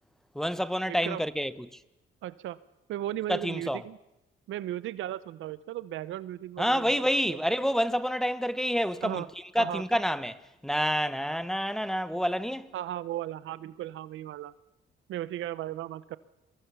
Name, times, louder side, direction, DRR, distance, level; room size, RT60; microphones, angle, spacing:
voice 1, 0.3-1.7 3.3-3.8 6.6-9.2 9.5-12.7, equal, ahead, 1.0 m, -28 dB
voice 2, 0.9-1.2 2.2-2.6 2.9-4.0 4.5-6.9 7.3-7.4 9.0-9.3 9.6-9.8 12.7-14.5 15.1-16.2, right 13 dB, 80° right, 0.8 m, -36 dB
23.5 x 22.5 x 7.0 m
cardioid pair, 90°, 20 cm